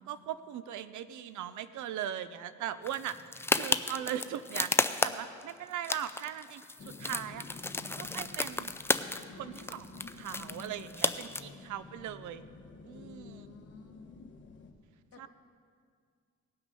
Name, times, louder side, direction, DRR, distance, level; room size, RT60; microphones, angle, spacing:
voice 1, 0.0-7.5 8.0-8.7 9.3-12.5 12.8-13.5 15.2-15.3, right 10 dB, 75° right, 14 dB, 0.6 m, -39 dB
sound 1, 2.9-5.5 5.8-9.3 9.5-11.4, left 2 dB, 10° left, 0.4 m, -32 dB
sound 2, 6.8-14.7, left 3 dB, 40° left, 1.2 m, -50 dB
voice 2, 12.9-14.2 15.1-15.3, left 6 dB, 55° left, 4 dB, 1.5 m, -52 dB
18.0 x 6.1 x 5.4 m, 2.1 s
cardioid pair, 90°, 30 cm